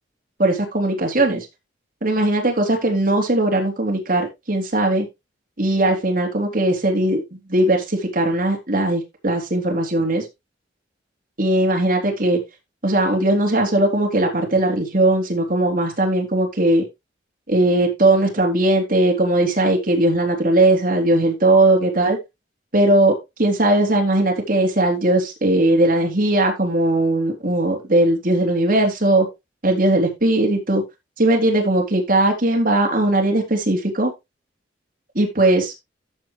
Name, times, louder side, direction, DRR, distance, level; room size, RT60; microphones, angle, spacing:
voice 1, 0.4-1.5 2.0-5.1 5.6-7.2 7.5-10.2 11.4-12.4 12.8-16.8 17.5-22.2 22.7-29.3 29.6-30.8 31.2-34.1 35.2-35.7, right 1 dB, 45° right, 2 dB, 3.6 m, -19 dB
14.0 x 5.9 x 3.3 m, 0.22 s
head